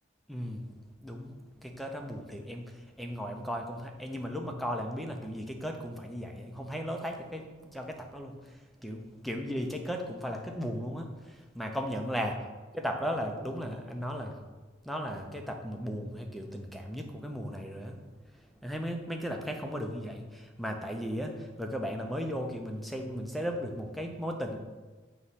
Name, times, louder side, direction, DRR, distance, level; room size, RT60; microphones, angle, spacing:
voice 1, 0.3-0.6 1.0-1.3 1.6-12.4 12.7-14.4 14.8-18.0 18.3-24.6, equal, ahead, 3 dB, 0.6 m, -36 dB
8.1 x 3.1 x 5.6 m, 1.4 s
head